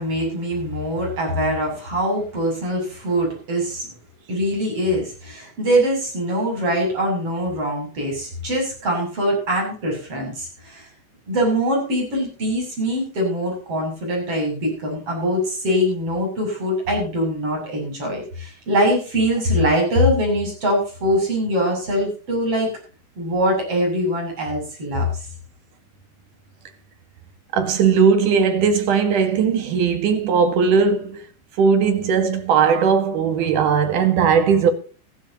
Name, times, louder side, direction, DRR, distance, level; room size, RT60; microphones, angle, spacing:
voice 1, 0.0-3.9 4.3-10.9 11.3-22.7 23.2-25.3, equal, 35° right, 8.3 m, -23 dB
voice 2, 27.5-31.3 31.6-34.7, right 6 dB, 60° right, 3.0 m, -18 dB
15.5 x 15.0 x 2.9 m
omnidirectional pair, 4.3 m